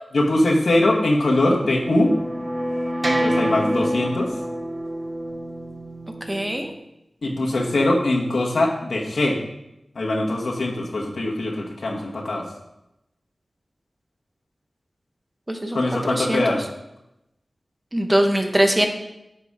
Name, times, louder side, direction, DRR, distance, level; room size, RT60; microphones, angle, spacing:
voice 1, 0.1-2.1 3.2-4.3 7.2-9.4 9.9-12.4 15.7-16.6, left 1 dB, 85° left, -1 dB, 1.5 m, -22 dB
sound 1, 1.6-6.7, equal, 35° right, 1.1 m, -27 dB
voice 2, 6.3-6.7 15.5-15.8 16.1-16.4 17.9-18.9, right 1 dB, 20° right, 4 dB, 1.1 m, -21 dB
7.9 x 5.3 x 4.9 m, 0.88 s
wide cardioid pair, 55°, 0 cm